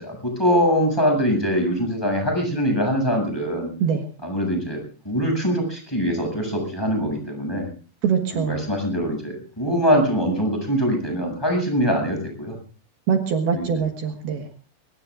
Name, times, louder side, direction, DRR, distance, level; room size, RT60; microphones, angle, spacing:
voice 1, 0.0-3.7 4.2-7.7 8.3-12.6 13.5-13.7, equal, 5° left, 2 dB, 7.1 m, -23 dB
voice 2, 8.0-8.6 13.1-14.5, right 7 dB, 70° right, 3 dB, 3.2 m, -23 dB
24.5 x 22.5 x 2.5 m, 0.38 s
omnidirectional pair, 4.9 m